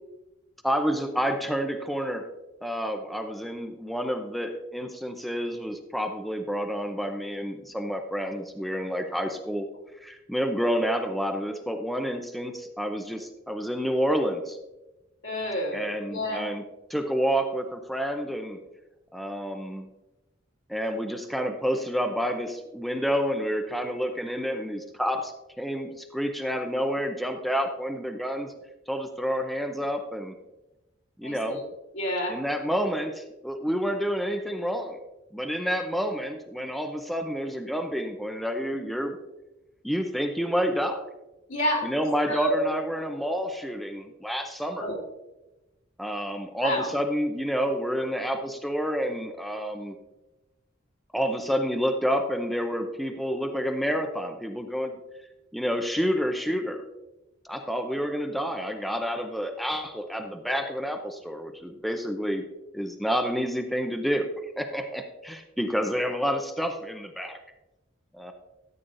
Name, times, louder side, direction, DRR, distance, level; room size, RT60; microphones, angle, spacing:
voice 1, 0.6-2.3 2.6-9.7 10.0-14.6 15.7-16.6 16.9-18.6 19.1-19.9 20.7-28.5 28.9-30.4 31.2-31.6 32.3-35.0 35.3-39.2 39.8-41.1 41.8-44.9 46.0-50.0 51.1-55.0 55.5-56.8 57.4-62.4 62.7-64.3 64.6-67.4 68.1-68.3, equal, ahead, 5 dB, 0.6 m, -29 dB
voice 2, 15.2-16.4 31.2-31.6 31.9-32.4 41.5-41.9 42.3-42.6 44.8-45.0 46.6-46.9, left 1 dB, 75° left, -3 dB, 3.3 m, -29 dB
14.0 x 8.5 x 2.6 m, 1.0 s
head